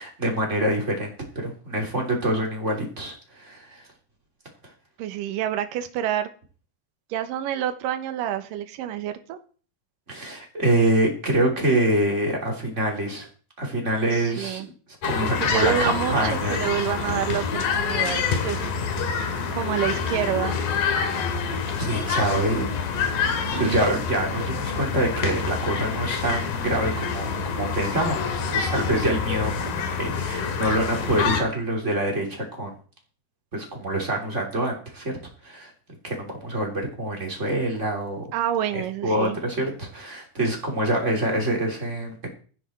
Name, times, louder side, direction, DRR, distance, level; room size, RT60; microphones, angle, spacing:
voice 1, 0.0-3.8 10.1-13.3 13.6-14.6 15.0-16.6 21.8-22.7 23.6-32.7 33.5-35.1 35.4-35.7 36.0-38.2 38.7-42.3, right 1 dB, 20° right, 0 dB, 3.2 m, -26 dB
voice 2, 5.0-6.3 7.1-9.4 14.1-14.7 15.2-16.2 16.5-18.7 19.5-20.6 23.5-23.8 38.3-39.4, right 11 dB, 75° right, 8 dB, 2.6 m, -28 dB
sound 1, 15.0-31.4, left 5 dB, 80° left, 3.4 m, -27 dB
14.5 x 9.8 x 4.4 m, 0.40 s
omnidirectional pair, 4.1 m